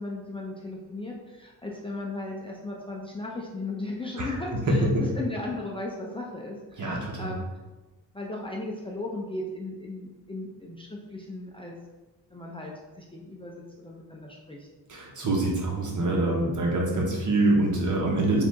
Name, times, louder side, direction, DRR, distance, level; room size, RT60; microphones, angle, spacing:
voice 1, 0.0-7.4 8.1-11.7 12.3-14.7, left 2 dB, 15° left, -2 dB, 0.7 m, -36 dB
voice 2, 6.8-7.4 14.9-18.4, right 2 dB, 45° right, -2 dB, 1.3 m, -25 dB
4.8 x 2.8 x 3.6 m, 1.2 s
cardioid pair, 75°, 41 cm